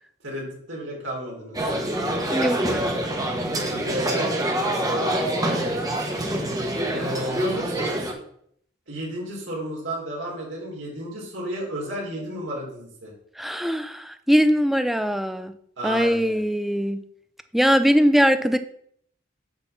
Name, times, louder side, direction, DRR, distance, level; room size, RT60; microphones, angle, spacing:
voice 1, 0.2-1.6 3.5-5.7 6.9-8.0 8.9-13.1 15.8-16.4, equal, 75° right, -3 dB, 3.6 m, -33 dB
sound 1, 1.5-8.1, right 1 dB, 20° right, 1.3 m, -25 dB
voice 2, 2.3-2.8 13.4-15.5 15.8-17.0 17.5-18.6, equal, ahead, 9 dB, 0.5 m, -21 dB
8.9 x 4.0 x 7.1 m, 0.67 s
head